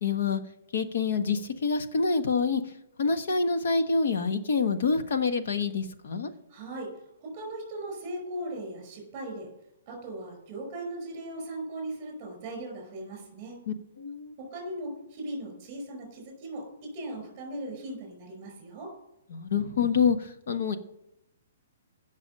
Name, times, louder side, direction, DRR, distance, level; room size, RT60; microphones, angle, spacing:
voice 1, 0.0-0.4 0.7-2.6 3.0-6.3 13.7-14.4 19.3-20.8, left 5 dB, 50° left, 7 dB, 1.3 m, -27 dB
voice 2, 6.5-6.9 7.2-9.5 9.9-13.6 14.4-18.9, right 1 dB, 20° right, 1 dB, 5.2 m, -38 dB
16.5 x 6.2 x 5.4 m, 0.83 s
hypercardioid pair, 180°, 0 cm